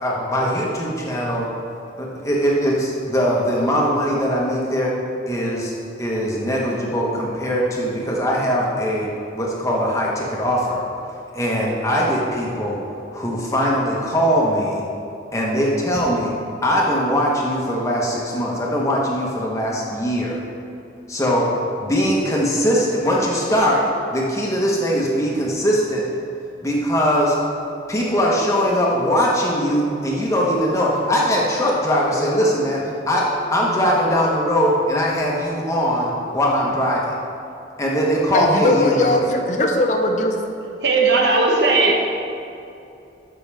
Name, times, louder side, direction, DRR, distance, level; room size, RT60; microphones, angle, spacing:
voice 1, 0.0-1.5 2.0-5.0 5.3-5.7 6.0-10.8 11.3-12.8 13.1-14.8 15.3-16.3 16.6-20.4 21.1-21.5 21.8-26.1 26.6-27.4 27.9-37.1 37.8-39.2, equal, 15° left, -3 dB, 1.3 m, -21 dB
voice 2, 38.3-40.3, left 2 dB, 45° left, 3 dB, 0.8 m, -19 dB
voice 3, 40.8-42.1, right 3 dB, 70° right, 0 dB, 1.2 m, -17 dB
12.5 x 6.2 x 3.5 m, 2.7 s
head